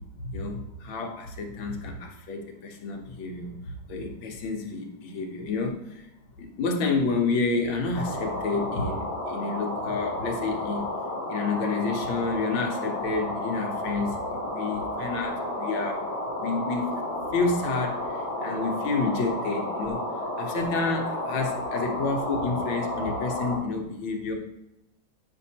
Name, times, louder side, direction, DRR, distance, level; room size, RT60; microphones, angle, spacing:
voice 1, 0.2-3.6 3.9-6.0 6.4-10.8 11.3-16.0 16.4-17.0 17.3-20.0 20.4-24.3, left 3 dB, 80° left, 2 dB, 1.7 m, -29 dB
sound 1, 7.9-23.6, left 1 dB, 35° right, 3.1 m, -32 dB
8.9 x 5.4 x 2.8 m, 0.90 s
omnidirectional pair, 2.2 m